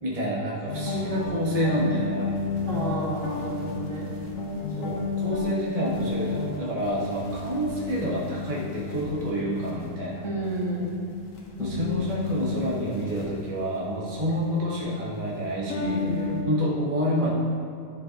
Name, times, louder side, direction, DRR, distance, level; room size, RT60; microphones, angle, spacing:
voice 1, 0.0-2.4 4.8-10.2 11.6-17.3, equal, 30° right, -6 dB, 1.4 m, -28 dB
sound 1, 0.7-16.4, left 4 dB, 85° left, 1.5 m, -33 dB
voice 2, 2.7-4.1 10.2-10.9 15.9-16.5, right 1 dB, 65° right, -7 dB, 2.3 m, -31 dB
11.0 x 7.4 x 2.9 m, 2.5 s
omnidirectional pair, 1.4 m